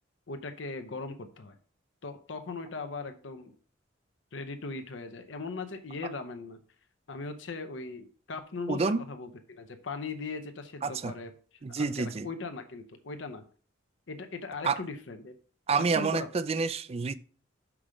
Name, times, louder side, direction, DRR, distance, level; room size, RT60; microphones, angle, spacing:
voice 1, 0.3-1.6 2.0-3.5 4.3-6.6 7.1-11.3 11.7-13.4 14.1-15.3 15.7-16.3, left 3 dB, 70° left, 0.7 m, -39 dB
voice 2, 8.7-9.0 10.8-11.1 11.6-12.3 14.6-14.8 15.7-17.1, right 4 dB, 30° right, 0.3 m, -28 dB
6.0 x 4.9 x 5.0 m
head